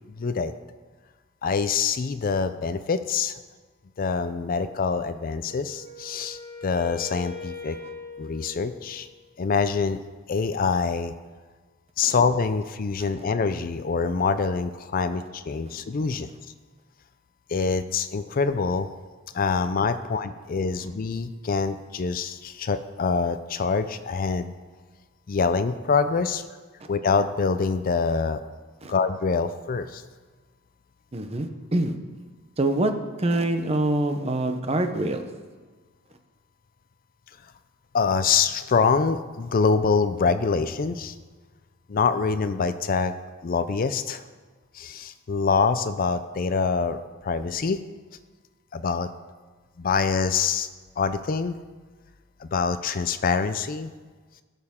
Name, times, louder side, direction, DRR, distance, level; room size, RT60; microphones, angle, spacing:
voice 1, 0.1-0.5 1.4-3.4 4.0-7.8 8.2-9.1 9.4-10.0 10.3-11.1 12.0-16.3 17.5-18.9 19.3-24.5 25.3-26.4 26.9-28.4 28.9-30.0 37.9-41.2 41.9-43.1 43.4-44.2 44.7-47.8 48.7-49.1 49.8-50.7 51.0-51.6 52.4-53.9, left 5 dB, 40° left, 11 dB, 0.4 m, -25 dB
Wind instrument woodwind instrument, 5.4-9.3, left 3 dB, 60° left, 2.5 m, -41 dB
voice 2, 31.1-31.9 32.6-32.9 33.2-35.2, right 1 dB, 30° right, 7 dB, 0.7 m, -25 dB
17.0 x 6.7 x 3.7 m, 1.4 s
head